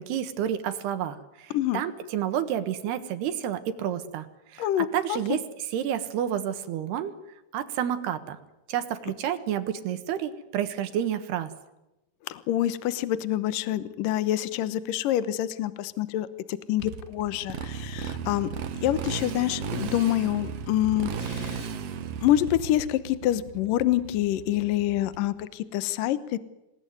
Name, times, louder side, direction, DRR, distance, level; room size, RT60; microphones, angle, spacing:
voice 1, 0.0-4.3 4.5-7.1 7.5-8.4 8.7-11.5, right 10 dB, 80° right, 10 dB, 3.5 m, -30 dB
voice 2, 4.6-5.4 12.3-16.3 16.7-18.5 18.8-21.7 22.2-26.4, left 13 dB, 70° left, 14 dB, 2.4 m, -26 dB
Motorcycle, 16.8-25.4, right 6 dB, 60° right, 1.7 m, -35 dB
27.0 x 18.5 x 9.4 m, 0.94 s
omnidirectional pair, 4.6 m